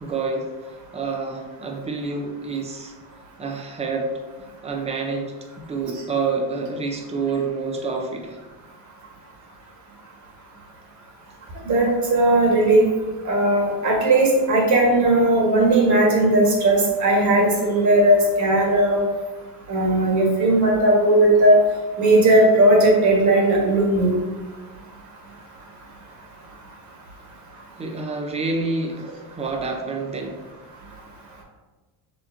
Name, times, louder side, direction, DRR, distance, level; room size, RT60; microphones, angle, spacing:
voice 1, 0.0-0.5 0.9-2.9 3.4-4.1 4.6-5.3 5.7-8.4 27.8-30.4, right 4 dB, 15° right, 3 dB, 0.5 m, -27 dB
voice 2, 11.6-12.8 13.2-19.0 19.7-21.6 22.0-24.1, right 1 dB, 40° right, -1 dB, 1.4 m, -17 dB
6.7 x 2.9 x 2.6 m, 1.3 s
cardioid pair, 140°, 42 cm